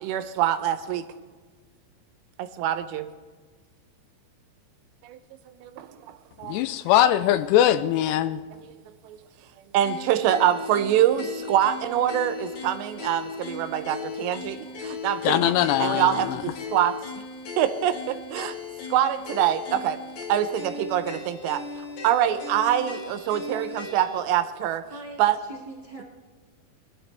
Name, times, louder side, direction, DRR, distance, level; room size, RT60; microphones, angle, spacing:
voice 1, 0.0-1.0 2.4-3.0 6.4-6.6 9.7-14.6 14.8-15.5 15.8-16.9 17.6-18.5 18.9-20.0 20.3-21.6 22.0-24.8 25.2-25.4, right 11 dB, 85° right, 2.9 m, -24 dB
voice 2, 6.4-8.4 15.2-16.4, left 12 dB, 85° left, 2.5 m, -21 dB
sound 1, 9.8-24.3, left 4 dB, 65° left, 3.7 m, -37 dB
voice 3, 24.9-26.0, right 2 dB, 20° right, 0.8 m, -41 dB
22.0 x 13.0 x 3.4 m
omnidirectional pair, 5.0 m